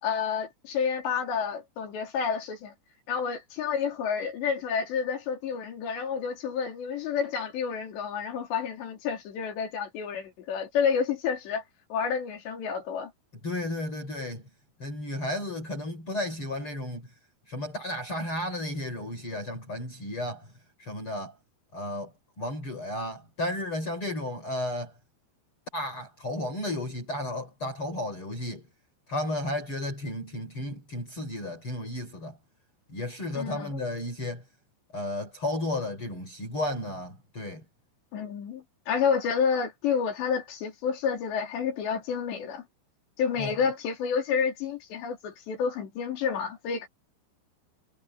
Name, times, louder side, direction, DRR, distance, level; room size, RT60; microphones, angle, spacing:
voice 1, 0.0-2.7 3.1-11.6 11.9-13.1 33.4-33.8 38.1-42.6 43.2-46.9, left 6 dB, 80° left, 5.7 m, -29 dB
voice 2, 13.4-14.4 14.8-17.1 17.5-20.5 20.8-21.3 21.7-22.1 22.4-24.9 25.7-28.6 29.1-32.4 32.9-34.4 34.9-37.6 43.4-43.6, left 1 dB, 30° left, 5.2 m, -33 dB
omnidirectional pair, 4.9 m